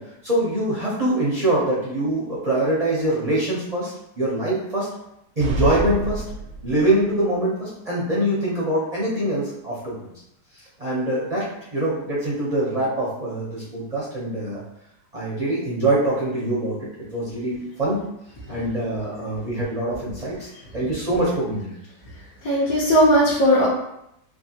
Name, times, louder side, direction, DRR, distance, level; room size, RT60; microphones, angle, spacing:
voice 1, 0.0-4.9 5.4-6.2 6.6-10.1 10.5-14.6 15.1-18.0 18.5-21.7, right 1 dB, 60° right, -7 dB, 0.4 m, -24 dB
sound 1, 5.4-7.1, equal, 85° right, 1.2 m, -27 dB
voice 2, 22.4-23.7, equal, 65° left, -9 dB, 1.1 m, -17 dB
3.4 x 2.4 x 2.7 m, 0.81 s
omnidirectional pair, 1.8 m